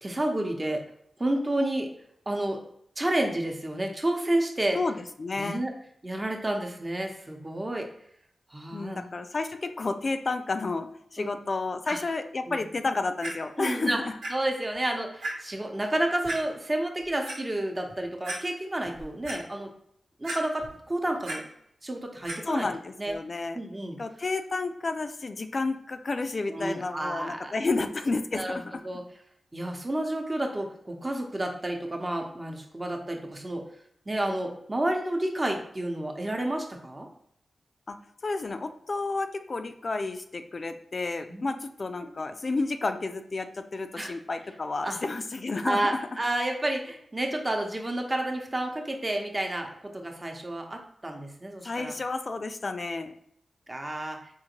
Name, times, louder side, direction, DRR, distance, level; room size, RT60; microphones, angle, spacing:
voice 1, 0.0-0.8 1.2-1.9 2.3-2.6 3.0-4.8 5.4-5.7 6.0-7.9 8.5-9.0 11.2-11.4 11.9-12.0 12.5-12.6 13.6-14.0 14.3-19.7 20.2-21.5 21.8-22.7 23.0-23.1 23.5-24.0 26.5-27.5 28.3-28.6 28.8-29.0 29.5-33.6 34.1-37.1 41.3-41.6 42.0-42.2 43.9-44.1 44.8-45.0 45.6-51.9 53.7-54.2, right 1 dB, 30° right, 2 dB, 0.8 m, -30 dB
voice 2, 4.7-5.7 8.7-14.1 22.5-23.6 24.0-28.8 37.9-38.0 38.2-46.0 51.6-53.1, left 3 dB, 55° left, 8 dB, 0.3 m, -31 dB
Clock, 13.2-13.3 14.2-14.3 14.7-14.8 15.2-15.3 16.2-16.4 17.0-17.4 17.9-18.0 18.2-18.4 18.8-19.4 20.2-20.8 21.0-21.4 22.2-22.4 23.1-23.2, right 1 dB, 90° right, 1.4 m, -34 dB
3.7 x 2.5 x 2.9 m, 0.71 s
cardioid pair, 40°, 0 cm